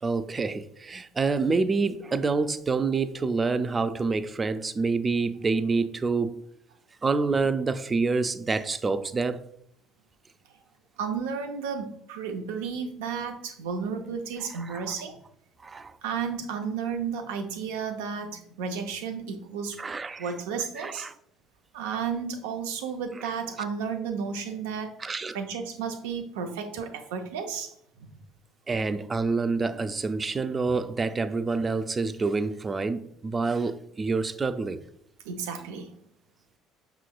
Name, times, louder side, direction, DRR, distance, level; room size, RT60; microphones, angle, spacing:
voice 1, 0.0-6.4 7.0-9.4 14.6-14.9 15.6-15.9 19.8-20.3 20.8-21.1 25.0-25.4 28.7-34.8, right 4 dB, 30° right, 0.3 m, -27 dB
voice 2, 11.0-15.2 16.0-19.8 20.2-21.1 21.7-24.9 25.3-28.1 35.2-35.9, right 6 dB, 90° right, 0.5 m, -33 dB
5.6 x 3.0 x 2.3 m
supercardioid pair, 70°, 0 cm